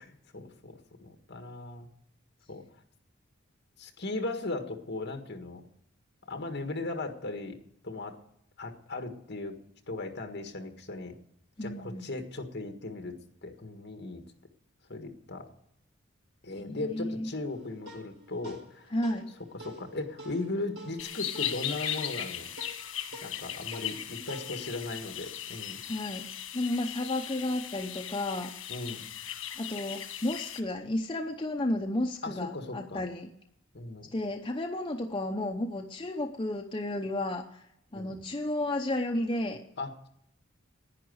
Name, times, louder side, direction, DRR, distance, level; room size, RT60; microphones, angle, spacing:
voice 1, 0.0-1.9 2.5-2.6 3.8-5.6 6.3-7.6 7.8-8.2 8.6-9.6 9.9-11.2 11.6-13.2 13.4-14.2 14.9-15.5 16.4-18.9 19.5-22.5 23.2-25.8 28.7-29.1 32.2-33.0 33.7-34.1 37.9-38.2 39.8-40.1, left 2 dB, 55° left, 5 dB, 1.7 m, -37 dB
voice 2, 11.6-12.1 16.6-17.3 18.9-19.3 25.9-26.3 26.5-28.5 29.6-33.3 34.1-37.4 37.9-39.6, left 1 dB, 25° left, 2 dB, 0.7 m, -32 dB
sound 1, 17.5-26.2, equal, 55° right, 2.1 m, -49 dB
sound 2, 21.0-30.6, left 10 dB, 85° left, 1.4 m, -38 dB
11.0 x 9.9 x 7.9 m, 0.75 s
head